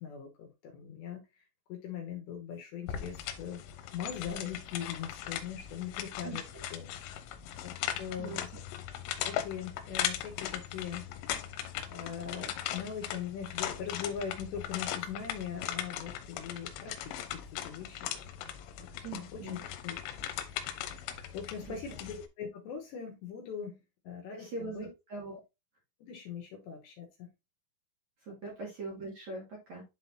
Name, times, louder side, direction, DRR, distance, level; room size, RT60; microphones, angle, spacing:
voice 1, 0.0-1.4 1.7-3.6 3.9-6.4 6.7-6.9 7.6-7.7 8.0-8.5 9.2-11.4 11.9-18.1 18.9-20.0 20.5-20.8 21.3-24.9 26.0-27.3 28.4-28.5, left 8 dB, 70° left, 1 dB, 3.0 m, -41 dB
sound 1, 2.9-22.3, left 10 dB, 85° left, 3.3 m, -39 dB
voice 2, 19.0-19.6 21.7-21.8 24.3-25.4 28.2-29.8, right 3 dB, 45° right, -3 dB, 2.7 m, -41 dB
11.0 x 3.9 x 2.7 m, 0.24 s
omnidirectional pair, 5.9 m